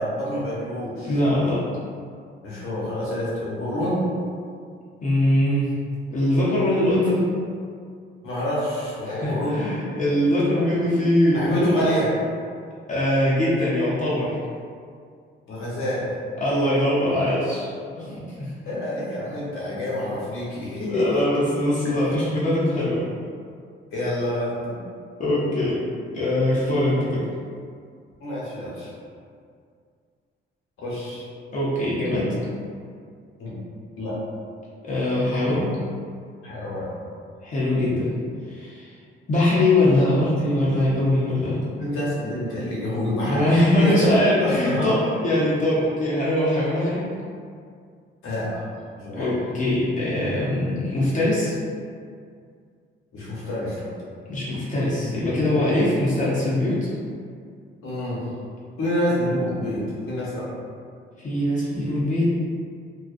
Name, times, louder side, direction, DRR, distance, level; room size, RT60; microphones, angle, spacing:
voice 1, 0.0-1.1 2.4-4.0 8.2-9.6 11.3-12.1 15.5-16.0 17.9-18.2 18.6-21.2 23.9-24.8 28.2-28.9 30.8-31.2 33.4-33.6 34.0-34.1 36.4-36.9 41.8-44.1 44.4-44.9 48.2-48.6 49.0-49.3 53.1-53.9 57.8-58.2 58.8-60.4, left 1 dB, 85° left, -7 dB, 0.9 m, -27 dB
voice 2, 1.0-1.6 5.0-5.7 6.1-7.2 9.0-11.9 12.9-14.4 16.4-17.7 18.4-18.5 20.9-23.0 25.2-25.8 26.1-27.2 31.5-32.3 34.8-35.8 37.4-38.1 38.5-38.9 39.3-41.6 43.3-47.1 49.1-51.5 54.3-56.8 61.2-62.3, left 1 dB, 40° left, -8 dB, 0.6 m, -22 dB
2.4 x 2.2 x 2.5 m, 2.2 s
cardioid pair, 120°, 21 cm